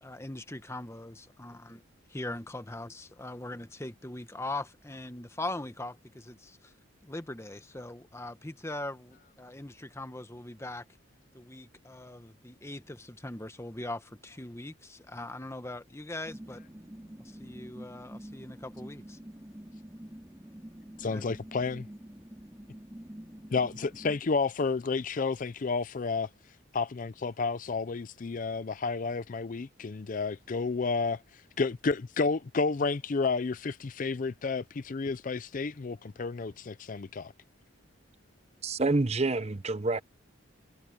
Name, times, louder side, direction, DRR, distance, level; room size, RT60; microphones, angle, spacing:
voice 1, 0.0-1.8 2.1-6.7 7.0-10.8 11.3-16.6 17.2-19.2 21.0-21.2, left 2 dB, 15° left, 1.1 m, -41 dB
sound 1, 16.2-24.2, equal, 10° right, 2.2 m, -47 dB
voice 2, 21.0-21.9 23.5-26.3 26.7-31.2 31.6-37.3, left 4 dB, 40° left, 0.4 m, -31 dB
voice 3, 38.6-40.0, right 3 dB, 30° right, 0.7 m, -27 dB
head